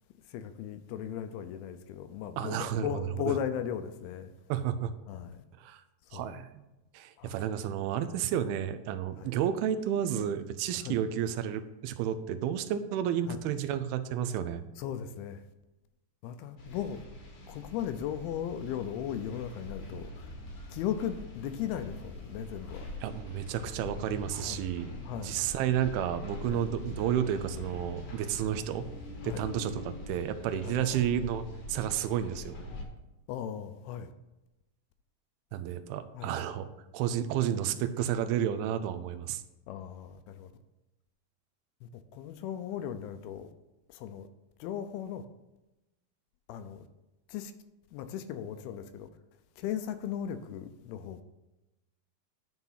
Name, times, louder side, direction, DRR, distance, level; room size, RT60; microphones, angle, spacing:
voice 1, 0.3-4.3 5.1-5.3 6.1-6.3 7.2-7.4 9.2-9.3 10.8-11.0 13.3-13.4 14.8-15.4 16.2-17.0 17.5-20.1 20.7-22.8 24.3-24.6 25.1-25.3 26.5-26.6 29.2-29.4 30.6-30.8 33.3-34.1 36.1-36.3 39.7-40.5 42.1-43.5 43.9-44.3 44.6-45.2 46.5-46.8 47.3-47.5 47.9-49.1 49.6-51.2, left 9 dB, 80° left, 10 dB, 2.4 m, -37 dB
voice 2, 2.4-3.4 4.5-4.9 5.6-5.8 6.1-6.6 6.9-14.6 23.0-24.9 25.2-28.8 29.2-32.6 35.5-36.7 36.9-39.4, right 10 dB, 80° right, 10 dB, 2.4 m, -31 dB
sound 1, 16.6-32.8, left 1 dB, 60° left, 1.7 m, -43 dB
10.5 x 4.0 x 5.6 m, 0.99 s
omnidirectional pair, 4.7 m